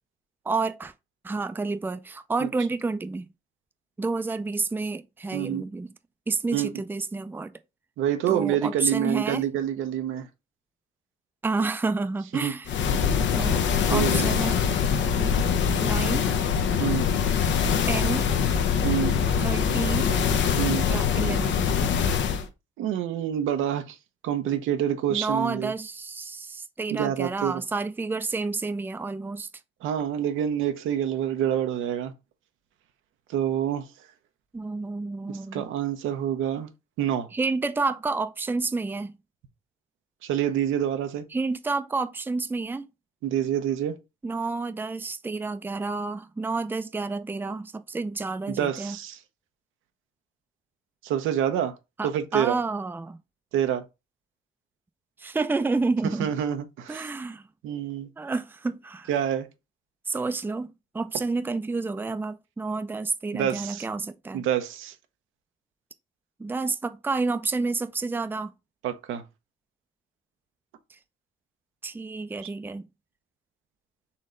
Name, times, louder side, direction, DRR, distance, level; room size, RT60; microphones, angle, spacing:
voice 1, 0.5-0.9 1.2-3.3 4.0-5.9 6.3-7.5 8.3-9.4 11.4-12.7 13.3-13.6 13.9-14.6 15.2-15.4 15.8-16.3 17.9-18.3 19.4-20.1 20.9-21.7 25.1-29.5 34.5-35.6 37.3-39.1 41.3-42.9 44.2-49.0 52.0-53.2 55.2-56.3 56.9-57.5 58.2-59.1 60.1-64.5 66.4-68.5 71.8-72.9, right 3 dB, 10° right, 0.4 m, -29 dB
voice 2, 5.3-5.6 6.5-6.7 8.0-10.3 12.4-12.5 13.9-14.3 16.8-17.1 18.8-19.2 20.6-20.9 22.8-24.0 24.2-25.7 26.9-27.5 29.8-32.1 33.3-33.9 35.5-36.7 37.0-37.3 40.2-41.3 43.2-44.0 48.5-49.2 51.0-51.7 52.0-52.5 53.5-53.8 56.2-57.1 57.6-58.1 59.1-59.5 63.3-63.8 64.3-64.9 68.8-69.2, right 10 dB, 90° right, 0.7 m, -27 dB
sound 1, 12.7-22.5, left 7 dB, 70° left, 0.7 m, -23 dB
4.2 x 3.1 x 3.8 m
cardioid pair, 90°, 20 cm